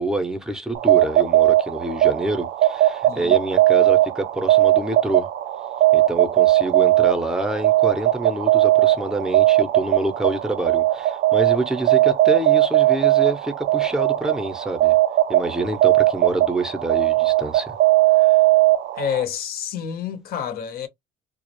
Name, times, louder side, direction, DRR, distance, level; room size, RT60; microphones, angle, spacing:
voice 1, 0.0-5.3 5.9-15.0 15.3-17.7 18.2-18.3, right 1 dB, 5° right, 0.6 m, -27 dB
sound 1, 0.7-19.2, right 15 dB, 70° right, 0.4 m, -18 dB
voice 2, 19.0-20.9, left 9 dB, 65° left, 0.7 m, -28 dB
2.3 x 2.0 x 2.9 m
cardioid pair, 110°, 17 cm